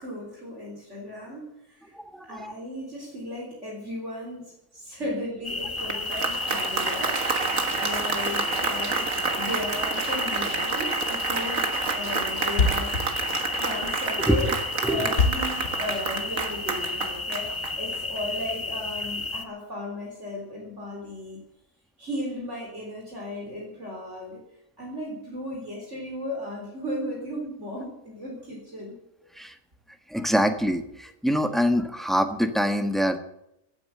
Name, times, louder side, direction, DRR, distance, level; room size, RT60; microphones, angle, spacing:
voice 1, 0.0-1.9 2.2-7.1 7.8-9.1 9.4-14.5 14.8-21.4 22.0-24.4 24.8-29.0, left 1 dB, 50° right, -1 dB, 4.0 m, -35 dB
voice 2, 1.9-2.5 5.9-6.0 13.4-13.6 14.3-14.6 14.8-15.1 29.3-29.6 30.1-33.2, equal, ahead, 7 dB, 1.2 m, -25 dB
sound 1, 5.4-19.4, left 3 dB, 20° left, 1.0 m, -32 dB
Applause, 5.6-18.2, right 5 dB, 70° right, 1.9 m, -29 dB
Thump thud, 12.6-16.6, left 4 dB, 80° left, 2.2 m, -26 dB
16.0 x 9.1 x 7.9 m, 0.82 s
omnidirectional pair, 1.5 m